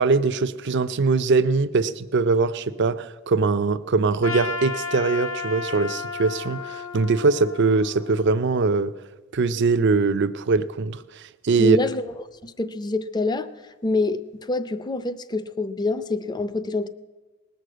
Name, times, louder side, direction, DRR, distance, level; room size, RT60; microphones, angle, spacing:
voice 1, 0.0-8.9 9.3-11.8, right 4 dB, 60° right, 12 dB, 0.5 m, -22 dB
Trumpet, 4.2-8.5, left 4 dB, 80° left, 1.5 m, -33 dB
voice 2, 11.6-12.1 12.4-13.5 13.8-16.9, left 3 dB, 20° left, 13 dB, 0.5 m, -26 dB
19.0 x 6.5 x 7.7 m, 1.2 s
head